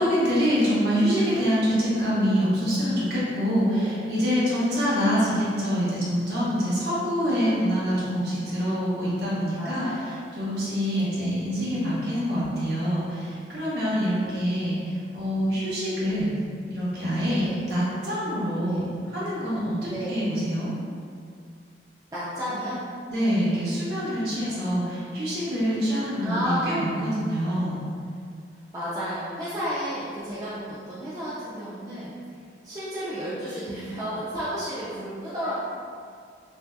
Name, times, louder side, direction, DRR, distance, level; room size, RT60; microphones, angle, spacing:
voice 1, 0.0-9.9 10.4-16.3 16.7-17.4 17.7-18.8 19.1-20.7 23.1-27.8, equal, 60° right, -9 dB, 0.8 m, -25 dB
voice 2, 3.7-4.0 9.6-10.1 10.9-11.5 14.3-14.6 16.0-16.1 17.4-17.6 18.6-18.9 19.9-20.2 22.1-22.8 26.2-26.7 28.7-35.5, equal, 20° right, -10 dB, 0.3 m, -33 dB
2.6 x 2.2 x 2.2 m, 2.2 s
head